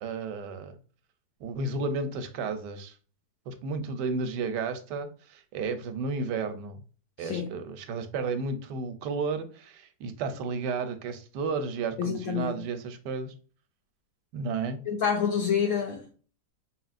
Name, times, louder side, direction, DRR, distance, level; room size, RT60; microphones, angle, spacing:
voice 1, 0.0-0.8 1.4-2.9 3.5-6.8 7.2-13.3 14.3-14.8, right 4 dB, 85° right, 1.3 m, -32 dB
voice 2, 7.2-7.5 12.0-12.6 14.9-16.0, left 7 dB, 70° left, 1.0 m, -28 dB
5.0 x 2.9 x 2.4 m
omnidirectional pair, 1.8 m